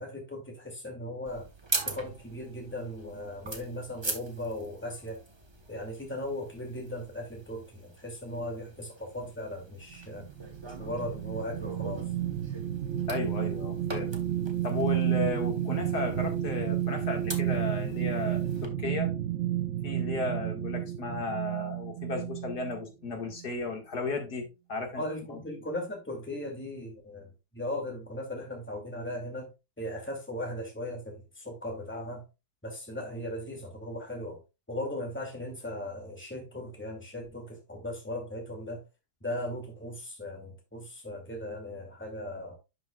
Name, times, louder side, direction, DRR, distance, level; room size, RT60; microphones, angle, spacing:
voice 1, 0.0-1.5 1.8-5.2 5.7-10.3 10.6-12.1 24.9-29.5 29.8-32.2 32.6-34.4 34.7-38.8 39.2-42.6, left 1 dB, 5° left, 2.3 m, -38 dB
sound 1, 1.3-18.7, right 2 dB, 20° right, 1.0 m, -42 dB
sound 2, 9.9-22.9 23.3-23.5, right 11 dB, 60° right, 0.8 m, -31 dB
voice 2, 13.1-14.1 14.6-19.1 19.8-25.0 25.3-25.4, left 3 dB, 65° left, 2.4 m, -34 dB
10.5 x 5.9 x 2.3 m
omnidirectional pair, 1.9 m